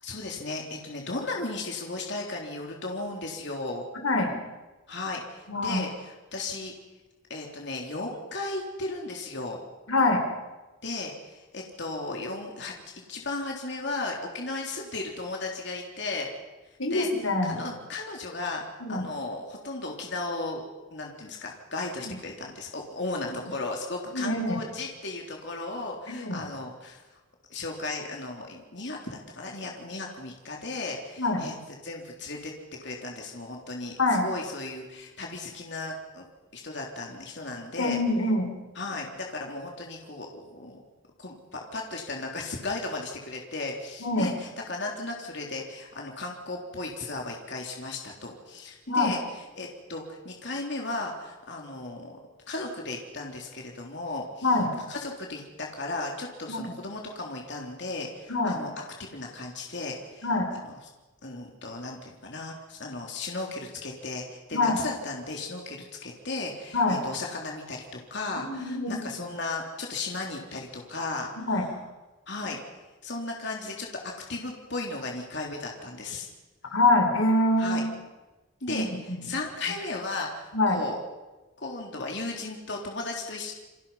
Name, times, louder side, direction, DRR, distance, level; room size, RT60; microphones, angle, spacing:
voice 1, 0.0-3.8 4.9-6.7 7.3-9.6 10.8-12.7 13.1-16.3 16.9-18.6 18.9-20.7 20.9-27.0 27.5-31.5 31.8-32.5 32.8-36.3 36.5-38.0 38.8-40.8 41.2-52.2 52.5-54.6 54.9-58.7 59.0-60.3 60.6-60.8 61.2-71.7 72.3-72.6 73.0-76.3 77.6-77.8 78.6-81.0 81.6-83.5, left 2 dB, 55° left, 0 dB, 3.5 m, -35 dB
voice 2, 4.0-4.3 5.5-5.8 9.9-10.2 16.8-17.6 18.8-19.0 22.0-22.1 23.3-23.4 24.1-24.6 26.1-26.4 31.2-31.4 34.0-34.2 37.8-38.5 44.0-44.3 48.9-49.1 54.4-54.7 56.5-56.7 58.3-58.6 60.2-60.5 64.5-64.8 66.7-67.0 68.4-69.0 71.4-71.6 76.7-77.9 78.7-79.3 80.5-80.8, left 2 dB, 85° left, 4 dB, 4.3 m, -25 dB
29.5 x 25.5 x 5.7 m, 1.1 s
head